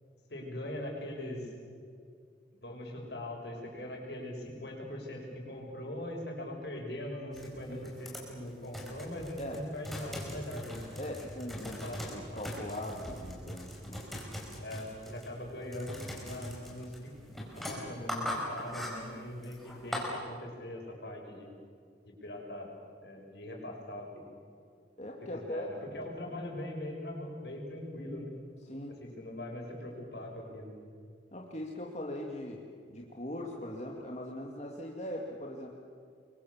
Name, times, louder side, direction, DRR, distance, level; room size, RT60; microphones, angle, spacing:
voice 1, 0.3-1.5 2.6-10.8 11.6-12.0 12.3-12.4 14.6-17.3 17.6-21.5 22.0-22.7 23.0-24.3 25.3-28.3 29.0-30.7, left 1 dB, 65° left, 0 dB, 6.7 m, -41 dB
sound 1, 7.3-20.1, equal, ahead, 4.9 m, -41 dB
voice 2, 11.0-11.8 12.1-14.0 25.0-25.8 28.6-29.0 31.3-35.7, left 1 dB, 40° left, -1 dB, 2.2 m, -40 dB
27.5 x 23.5 x 7.3 m, 2.2 s
head